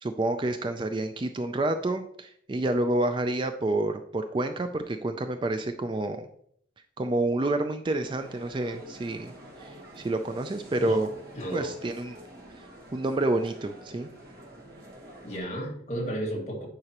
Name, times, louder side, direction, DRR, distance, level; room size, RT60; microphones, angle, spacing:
voice 1, 0.0-6.3 7.0-9.3 9.6-11.1 11.5-12.2 12.5-12.7 12.9-14.1, right 2 dB, 25° right, 8 dB, 0.3 m, -28 dB
sound 1, 8.0-15.4, equal, 50° right, 1.5 m, -47 dB
voice 2, 11.3-11.7 15.2-16.7, right 1 dB, 35° left, -2 dB, 1.9 m, -33 dB
9.5 x 4.9 x 2.9 m, 0.65 s
head